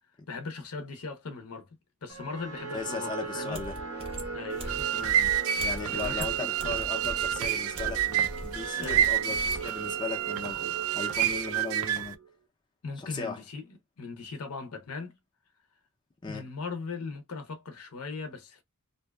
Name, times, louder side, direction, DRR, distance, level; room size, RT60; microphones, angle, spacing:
voice 1, 0.3-1.7 2.0-3.6 4.3-6.5 8.8-9.0 12.8-15.2 16.2-18.6, left 4 dB, 80° left, 0.6 m, -39 dB
sound 1, 2.1-12.3, right 4 dB, 85° right, 0.8 m, -39 dB
voice 2, 2.7-3.8 4.9-12.2 13.0-13.4 16.2-16.5, left 4 dB, 20° left, 0.5 m, -38 dB
sound 2, 3.5-9.6, right 1 dB, 25° right, 0.6 m, -41 dB
sound 3, 4.5-12.1, right 10 dB, 70° right, 0.3 m, -29 dB
2.6 x 2.2 x 2.2 m
head